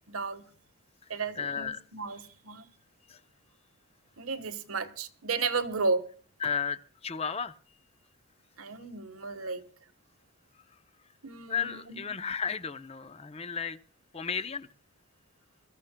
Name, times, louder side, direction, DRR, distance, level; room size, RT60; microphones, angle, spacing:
voice 1, 0.1-0.5 1.1-2.6 4.2-6.0 8.6-9.6 11.2-12.0, right 4 dB, 85° right, 1.3 m, -33 dB
voice 2, 1.4-1.8 3.1-3.2 6.4-7.5 11.5-13.8 14.1-14.7, left 6 dB, 30° left, 0.6 m, -33 dB
26.0 x 14.5 x 2.2 m
head